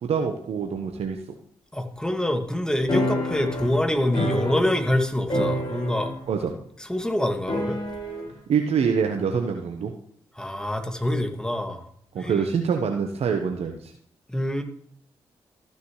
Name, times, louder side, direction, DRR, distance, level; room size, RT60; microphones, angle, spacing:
voice 1, 0.0-1.4 6.3-6.5 8.5-9.9 12.1-13.9, right 6 dB, 65° right, 4 dB, 1.1 m, -25 dB
voice 2, 1.7-6.1 6.8-7.8 10.4-11.8 12.2-12.5 14.3-14.6, left 1 dB, 5° left, 5 dB, 2.0 m, -26 dB
sound 1, 2.9-5.0 5.3-6.3 6.6-6.7 7.5-8.3, equal, 45° left, 4.9 m, -27 dB
14.0 x 6.8 x 3.2 m, 0.65 s
hypercardioid pair, 40°, 11 cm